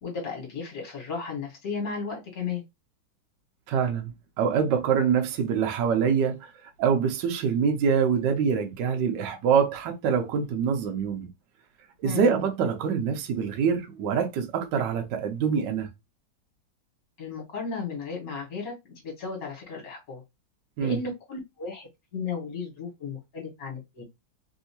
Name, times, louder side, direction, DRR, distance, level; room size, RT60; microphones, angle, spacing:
voice 1, 0.0-2.6 12.0-12.3 17.2-18.7 19.0-20.2 20.8-24.0, left 5 dB, 50° left, 1.6 m, -34 dB
voice 2, 3.7-4.1 4.4-6.5 6.8-11.3 12.0-15.9 20.8-21.0, right 6 dB, 70° right, 1.2 m, -25 dB
3.5 x 2.7 x 2.7 m
omnidirectional pair, 2.2 m